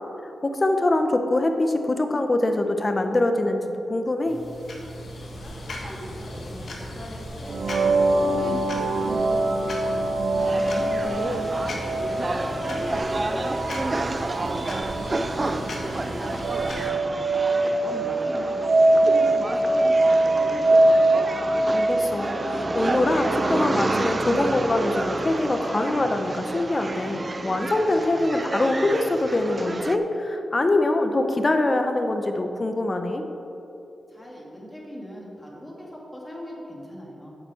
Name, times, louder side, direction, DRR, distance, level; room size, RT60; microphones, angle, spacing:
voice 1, 0.4-4.4 11.0-11.4 21.7-33.2, left 2 dB, 35° left, 6 dB, 0.8 m, -24 dB
sound 1, 4.2-16.9, left 1 dB, 65° left, 1.6 m, -37 dB
voice 2, 5.8-7.8 8.1-10.0 10.6-15.6 15.9-17.1 17.6-20.9 34.1-37.3, equal, 15° left, -3 dB, 2.4 m, -40 dB
sound 2, 7.5-23.1, right 2 dB, 75° right, 0.7 m, -23 dB
sound 3, 10.4-30.0, right 2 dB, 35° right, 0.5 m, -30 dB
8.0 x 7.5 x 5.6 m, 2.9 s
cardioid pair, 75°, 0 cm